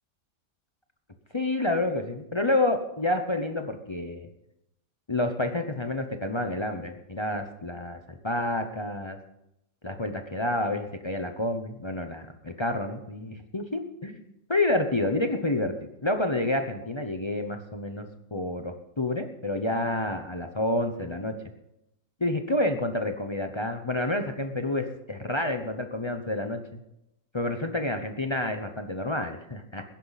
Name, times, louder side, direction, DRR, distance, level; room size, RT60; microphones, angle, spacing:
voice 1, 1.3-4.3 5.1-9.2 9.8-18.1 18.3-21.3 22.2-26.6 27.3-29.8, left 1 dB, 30° left, 6 dB, 0.5 m, -29 dB
20.5 x 10.5 x 4.1 m, 0.85 s
omnidirectional pair, 1.9 m